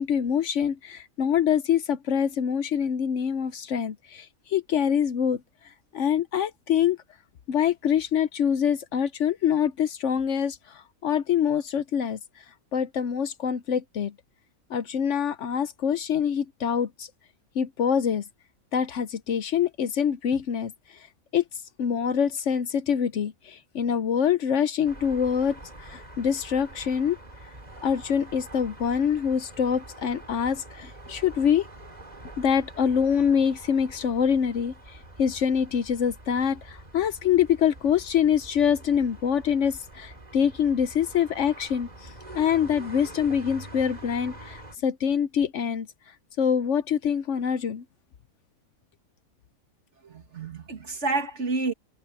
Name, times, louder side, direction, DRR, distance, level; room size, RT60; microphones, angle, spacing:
voice 1, 0.0-5.4 5.9-7.0 7.5-12.2 12.7-14.1 14.7-17.1 17.5-18.2 18.7-21.0 21.3-21.4 21.8-27.2 27.8-31.7 32.4-45.9 46.4-47.8, left 8 dB, 65° left, 1.0 m, -25 dB
sound 1, 24.8-44.8, right 1 dB, 30° right, 3.1 m, -45 dB
voice 2, 50.0-51.7, right 3 dB, 55° right, 2.5 m, -29 dB
omnidirectional pair, 1.5 m